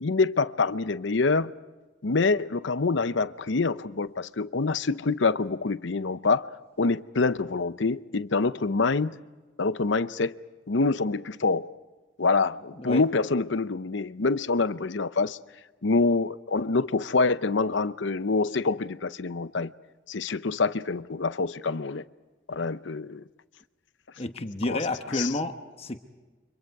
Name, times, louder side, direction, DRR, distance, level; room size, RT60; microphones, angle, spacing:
voice 1, 0.0-1.5 2.0-6.5 6.8-9.1 9.6-10.3 10.7-11.7 12.2-15.4 15.8-19.7 20.1-22.0 22.5-23.2 24.7-24.8 25.1-25.3, left 3 dB, 65° left, 0.7 m, -26 dB
voice 2, 24.2-26.0, left 2 dB, 30° left, 1.1 m, -30 dB
30.0 x 25.5 x 4.8 m
head